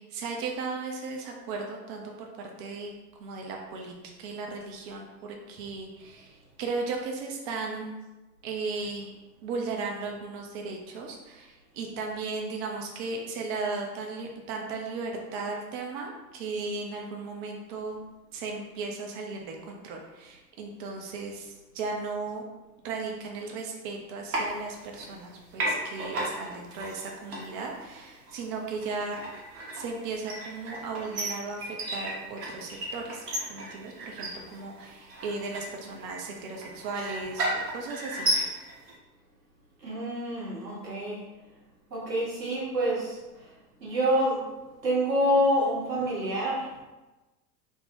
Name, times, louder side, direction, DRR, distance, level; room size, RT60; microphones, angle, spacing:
voice 1, 0.0-2.9 3.2-8.0 8.4-9.1 9.4-18.0 18.3-22.4 22.8-29.1 29.7-38.5, right 4 dB, 35° right, 1 dB, 0.4 m, -36 dB
sound 1, 24.3-25.3 25.5-38.9, right 1 dB, 65° right, 1.1 m, -34 dB
voice 2, 39.8-41.2 41.9-43.2 43.8-44.5 44.8-46.8, equal, 85° right, -6 dB, 1.3 m, -27 dB
3.1 x 2.1 x 3.0 m, 1.1 s
figure-of-eight pair, 85°, 49 cm